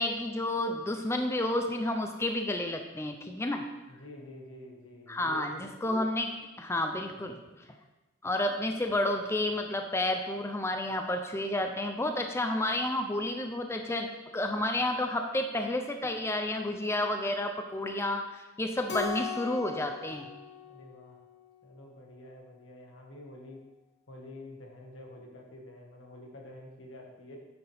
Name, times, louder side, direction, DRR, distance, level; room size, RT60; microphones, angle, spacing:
voice 1, 0.0-3.6 5.1-7.7 8.2-14.1 14.3-20.3, left 1 dB, 15° left, 5 dB, 0.5 m, -31 dB
voice 2, 3.9-5.7 7.2-7.4 20.6-21.2 21.6-23.6 24.1-27.4, left 1 dB, 80° left, 0 dB, 1.7 m, -48 dB
Keyboard (musical), 18.9-21.5, left 6 dB, 60° left, 0.9 m, -38 dB
9.3 x 7.1 x 3.5 m, 1.1 s
head